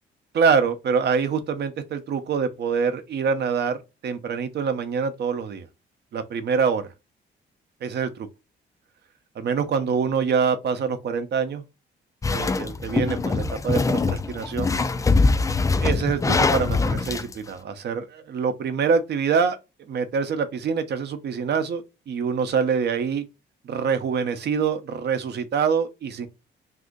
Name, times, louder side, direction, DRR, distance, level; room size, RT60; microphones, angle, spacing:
voice 1, 0.3-5.7 6.1-6.9 7.8-8.3 9.4-11.6 12.3-14.7 15.8-19.6 19.9-23.2 23.6-26.3, right 6 dB, 55° right, 0.6 m, -25 dB
sound 1, 12.2-17.3, left 3 dB, 15° left, 0.4 m, -23 dB
2.7 x 2.6 x 3.6 m
cardioid pair, 90°, 20 cm